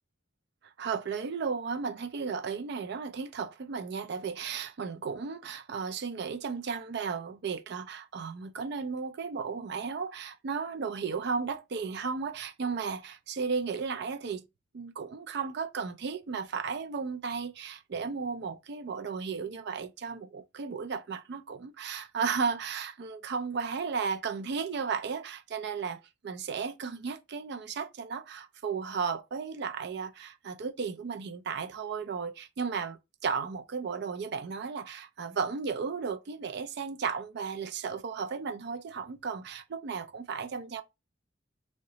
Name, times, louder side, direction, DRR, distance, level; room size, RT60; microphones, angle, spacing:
voice 1, 0.8-14.4 14.7-26.0 26.2-40.8, right 5 dB, 60° right, 0.4 m, -34 dB
3.8 x 2.2 x 3.8 m
head